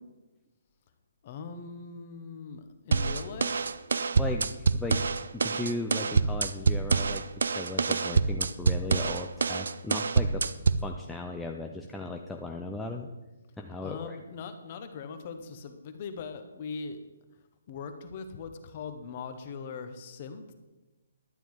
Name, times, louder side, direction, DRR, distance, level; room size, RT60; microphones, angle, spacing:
voice 1, 1.2-3.8 13.8-17.0 17.7-20.5, left 5 dB, 25° left, 9 dB, 0.8 m, -40 dB
sound 1, 2.9-10.9, right 4 dB, 70° right, 0.5 m, -26 dB
voice 2, 4.2-5.0 5.3-7.2 7.5-10.4 10.8-13.1 13.6-14.2, left 2 dB, 5° left, 1 dB, 0.3 m, -36 dB
11.5 x 8.9 x 4.7 m, 1.1 s
hypercardioid pair, 180°, 0 cm